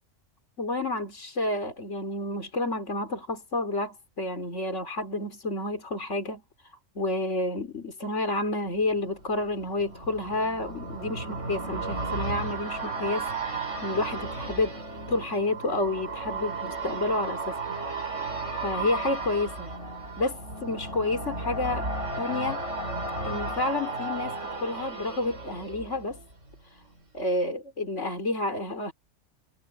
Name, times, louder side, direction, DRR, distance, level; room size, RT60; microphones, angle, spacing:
voice 1, 0.6-14.8 15.1-17.8 18.6-19.7 20.2-21.9 22.2-22.6 23.2-26.2 27.1-28.9, left 2 dB, 65° left, 3.8 m, -30 dB
Scream Reverse Nightmare, 8.8-26.6 26.9-27.0, right 3 dB, 70° right, 4.4 m, -34 dB
omnidirectional pair, 1.3 m